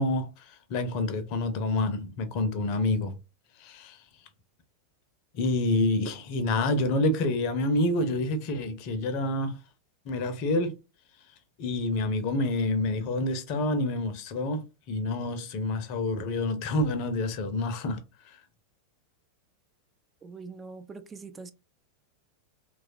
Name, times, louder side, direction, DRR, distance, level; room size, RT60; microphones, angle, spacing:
voice 1, 0.0-3.1 3.6-4.0 5.3-9.6 10.1-10.8 11.6-18.4, left 2 dB, 45° left, 0.6 m, -28 dB
voice 2, 20.2-21.5, right 4 dB, 20° right, 0.3 m, -43 dB
3.0 x 2.3 x 2.7 m
figure-of-eight pair, 90°, 0 cm